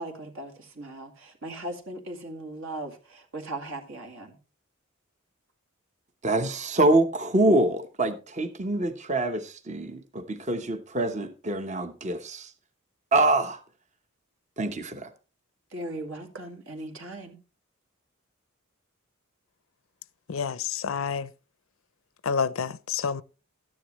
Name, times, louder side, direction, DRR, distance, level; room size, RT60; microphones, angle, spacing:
voice 1, 0.0-4.3 15.7-17.4, right 1 dB, 65° right, 2.2 m, -38 dB
voice 2, 6.2-12.5 13.1-13.6 14.6-15.1, right 2 dB, 35° right, 1.0 m, -25 dB
voice 3, 20.3-21.3 22.2-23.2, left 6 dB, 70° left, 0.5 m, -28 dB
13.0 x 10.0 x 3.1 m
head